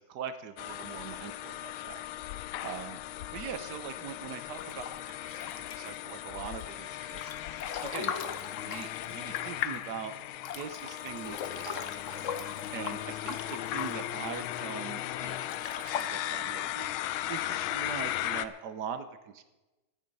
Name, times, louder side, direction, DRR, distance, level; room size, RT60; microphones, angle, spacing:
voice 1, 0.0-2.0 2.3-3.0 3.3-8.2 8.6-10.1 10.5-19.4, right 7 dB, 65° right, 11 dB, 1.3 m, -42 dB
sound 1, 0.6-18.5, left 13 dB, 85° left, 1.4 m, -37 dB
Breathing / Bathtub (filling or washing) / Splash splatter, 4.5-6.1 6.6-9.8 10.0-10.1 10.4-14.6 15.2-16.0, left 7 dB, 55° left, 0.9 m, -40 dB
15.0 x 10.0 x 5.4 m, 1.1 s
omnidirectional pair, 2.2 m